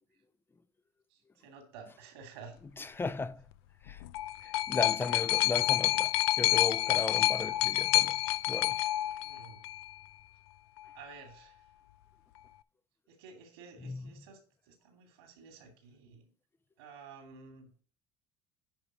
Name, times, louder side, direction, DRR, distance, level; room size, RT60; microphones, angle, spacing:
voice 1, 1.1-2.5 9.1-9.6 10.9-11.6 13.1-14.4 14.7-16.3 16.8-17.7, right 5 dB, 90° right, 2.5 m, -52 dB
voice 2, 2.8-3.4 3.8-4.0 4.4-8.2 8.5-8.8 13.8-14.1, left 4 dB, 15° left, 0.5 m, -36 dB
sound 1, 3.9-9.9 10.8-10.9, left 16 dB, 85° left, 0.4 m, -28 dB
10.0 x 3.6 x 6.0 m
supercardioid pair, 100°, 13 cm